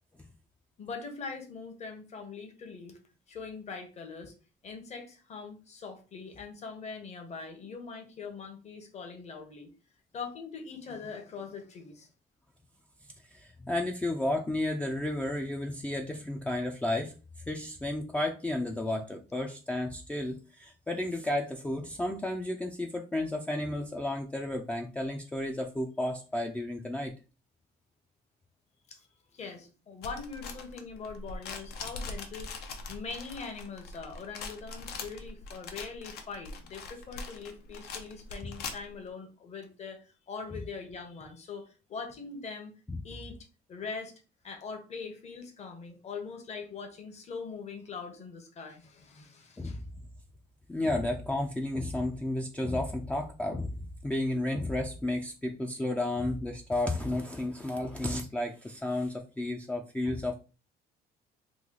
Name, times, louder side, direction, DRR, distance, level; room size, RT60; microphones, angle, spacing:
voice 1, 0.8-3.0 3.3-4.3 4.6-9.7 10.1-12.1 28.9-29.1 29.3-42.7 43.0-43.4 43.7-44.1 44.4-49.8, left 5 dB, 40° left, 4 dB, 0.9 m, -42 dB
voice 2, 13.3-17.1 17.5-27.1 42.9-43.0 49.6-49.8 50.7-53.7 54.0-60.3, left 1 dB, 10° left, 3 dB, 0.3 m, -32 dB
sound 1, 30.0-39.0, left 4 dB, 75° left, 0.7 m, -42 dB
3.1 x 2.3 x 3.7 m, 0.34 s
cardioid pair, 110°, 17 cm